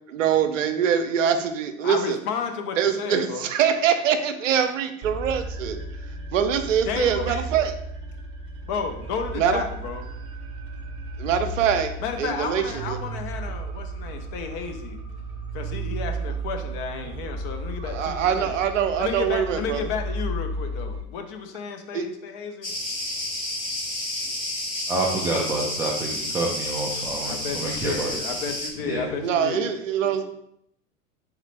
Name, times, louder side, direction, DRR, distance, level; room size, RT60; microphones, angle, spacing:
voice 1, 0.1-2.2 2.8-5.8 6.3-7.7 9.3-9.6 11.2-11.9 12.2-13.0 17.8-19.8 21.9-22.1 29.2-30.2, right 8 dB, 70° right, 8 dB, 0.6 m, -23 dB
voice 2, 1.8-3.5 6.8-7.5 8.6-10.1 12.0-15.0 15.5-18.5 19.0-22.7 27.2-29.7, left 6 dB, 45° left, 5 dB, 0.7 m, -32 dB
sound 1, 5.0-21.0, right 2 dB, 35° right, 0.7 m, -34 dB
Cricket, 22.6-28.7, left 1 dB, 85° left, 1.4 m, -30 dB
voice 3, 24.9-28.1 28.8-29.1, right 2 dB, 5° right, -4 dB, 0.3 m, -28 dB
3.6 x 3.2 x 3.2 m, 0.74 s
figure-of-eight pair, 85°, 40 cm